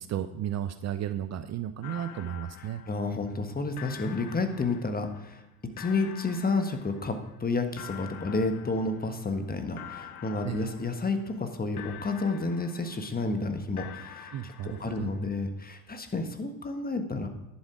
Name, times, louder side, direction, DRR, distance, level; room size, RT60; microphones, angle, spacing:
voice 1, 0.0-2.8 10.4-10.6 14.3-15.1, right 10 dB, 40° right, 11 dB, 0.6 m, -34 dB
sound 1, 1.8-3.5 3.8-5.4 5.8-7.4 7.8-9.5 9.8-11.5 11.8-13.4 13.8-15.4, left 9 dB, 90° left, 0.6 m, -47 dB
voice 2, 2.9-5.4 5.8-17.3, left 3 dB, 20° left, 7 dB, 1.4 m, -31 dB
10.5 x 7.2 x 4.9 m, 0.98 s
hypercardioid pair, 55°, 43 cm